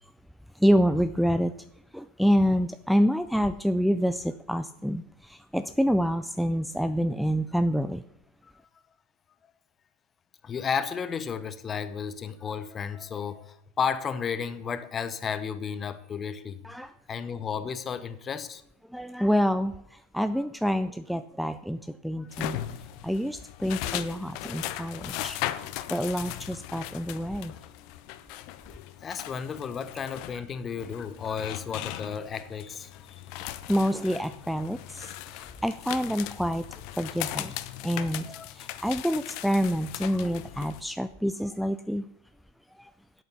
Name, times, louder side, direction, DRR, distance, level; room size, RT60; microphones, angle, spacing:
voice 1, 0.5-1.5 1.9-8.0 16.6-16.9 18.9-22.6 23.0-25.4 25.9-27.5 33.7-36.6 37.0-37.5 37.8-42.1 42.8-42.9, equal, ahead, 12 dB, 0.4 m, -27 dB
voice 2, 10.4-16.6 17.1-18.6 29.0-33.2 38.3-38.5, left 6 dB, 25° left, 12 dB, 0.9 m, -33 dB
sound 1, 22.3-40.8, left 14 dB, 55° left, 0.7 m, -38 dB
8.3 x 7.9 x 5.6 m, 0.75 s
hypercardioid pair, 105°, 0 cm